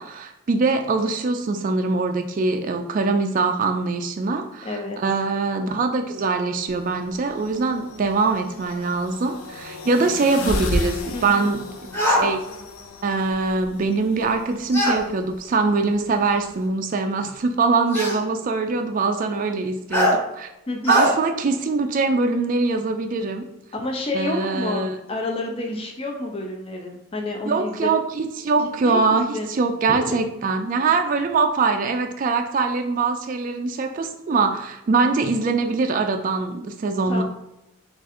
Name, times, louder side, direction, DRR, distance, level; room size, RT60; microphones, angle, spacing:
voice 1, 0.0-11.6 12.0-12.4 13.0-20.5 20.9-23.4 24.1-24.9 27.5-37.2, right 4 dB, 40° right, 5 dB, 0.3 m, -23 dB
voice 2, 4.6-5.0 11.1-11.4 20.7-21.0 23.7-28.0 28.8-29.5 29.9-30.0 37.1-37.2, left 2 dB, 25° left, 1 dB, 0.5 m, -29 dB
sound 1, 6.7-16.7, left 2 dB, 80° left, 0.5 m, -34 dB
sound 2, 11.9-12.3 14.7-15.0 16.3-16.4 17.9-18.2 19.9-20.2 20.8-21.1, equal, 10° left, 0.9 m, -20 dB
3.6 x 2.5 x 4.2 m, 0.86 s
head